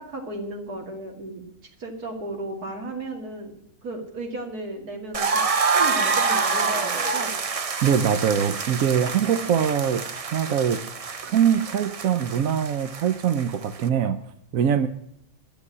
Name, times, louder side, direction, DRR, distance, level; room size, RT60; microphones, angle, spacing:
voice 1, 0.0-1.4 1.8-3.5 3.8-5.3 5.7-7.3, right 2 dB, 85° right, 2 dB, 2.9 m, -34 dB
sound 1, 5.1-13.9, right 4 dB, 45° right, 0.4 m, -27 dB
voice 2, 7.8-10.8 11.2-14.2 14.5-14.9, right 8 dB, 70° right, 10 dB, 1.1 m, -23 dB
12.5 x 7.1 x 9.6 m, 0.74 s
omnidirectional pair, 1.6 m